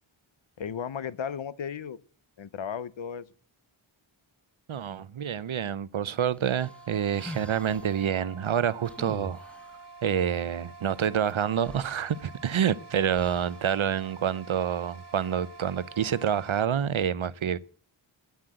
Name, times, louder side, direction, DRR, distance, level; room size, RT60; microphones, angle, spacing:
voice 1, 0.6-2.0 2.4-3.3, left 7 dB, 65° left, 0.7 m, -35 dB
voice 2, 4.7-9.4 10.0-17.6, right 8 dB, 70° right, 0.7 m, -27 dB
sound 1, 6.4-8.0 8.8-9.8 11.3-11.4 11.6-12.6 13.1-13.7, left 1 dB, 5° left, 0.5 m, -44 dB
sound 2, 6.6-16.7, right 3 dB, 55° right, 1.1 m, -48 dB
9.5 x 7.7 x 7.6 m
wide cardioid pair, 50°, 50 cm